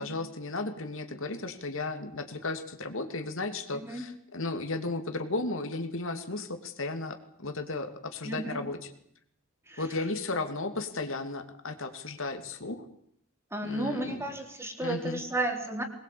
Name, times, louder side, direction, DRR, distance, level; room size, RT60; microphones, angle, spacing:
voice 1, 0.0-8.9 9.8-12.8 13.6-14.3 14.8-15.2, left 2 dB, 65° left, 7 dB, 2.7 m, -34 dB
voice 2, 3.7-4.0 8.2-8.6 9.7-9.8 13.5-15.8, right 1 dB, 15° right, 4 dB, 3.9 m, -33 dB
23.0 x 20.5 x 8.6 m, 0.70 s
head